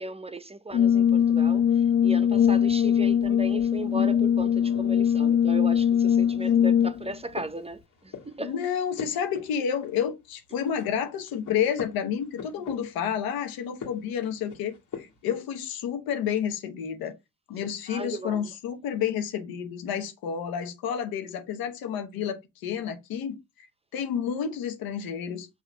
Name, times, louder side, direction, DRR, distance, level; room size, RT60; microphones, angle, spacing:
voice 1, 0.0-1.6 2.0-8.5 17.9-18.4, right 2 dB, 15° right, 0.7 m, -36 dB
Brass instrument, 0.7-7.1, left 8 dB, 40° left, 0.5 m, -21 dB
sound 1, 7.0-8.4 8.8-10.3 10.6-13.1 13.6-15.3, left 6 dB, 55° left, 1.9 m, -43 dB
voice 2, 8.4-17.2 17.5-23.7 23.9-25.5, left 8 dB, 90° left, 1.0 m, -30 dB
6.0 x 3.0 x 5.5 m
supercardioid pair, 50°, 35 cm